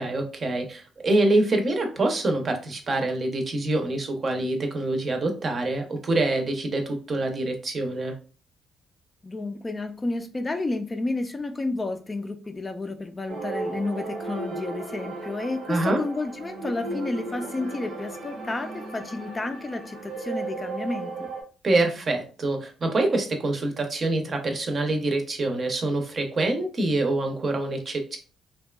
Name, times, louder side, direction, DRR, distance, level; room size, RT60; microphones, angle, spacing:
voice 1, 0.0-8.1 15.7-16.0 21.6-28.2, right 2 dB, 45° right, 4 dB, 0.6 m, -25 dB
voice 2, 9.2-21.3, left 2 dB, 25° left, 6 dB, 0.3 m, -31 dB
sound 1, 13.3-21.4, right 3 dB, 80° right, 0.7 m, -35 dB
2.6 x 2.2 x 2.3 m, 0.36 s
cardioid pair, 90°, 0 cm